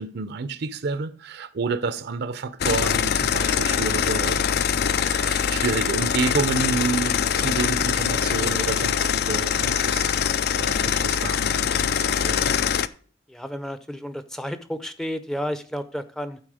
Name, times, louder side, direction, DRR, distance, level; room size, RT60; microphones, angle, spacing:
voice 1, 0.0-10.2 10.6-12.6, right 4 dB, 60° right, 0.5 m, -29 dB
sound 1, 2.6-12.9, left 8 dB, 55° left, 0.4 m, -23 dB
voice 2, 13.3-16.4, equal, 5° left, 0.5 m, -32 dB
11.0 x 4.4 x 4.8 m
head